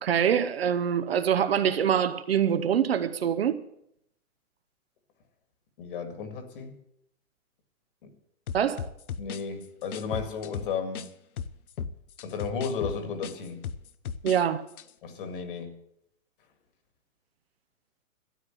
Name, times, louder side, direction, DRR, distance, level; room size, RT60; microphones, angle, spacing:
voice 1, 0.0-3.6 8.5-8.9 14.2-14.6, right 8 dB, 45° right, 0.8 m, -24 dB
voice 2, 5.8-6.8 8.0-8.1 9.2-11.1 12.2-13.7 15.0-15.8, left 5 dB, 40° left, 2.0 m, -34 dB
sound 1, 8.5-11.1 11.4-14.4 14.7-14.9, left 7 dB, 80° left, 1.0 m, -36 dB
13.0 x 9.7 x 7.7 m
hypercardioid pair, 170°, 43 cm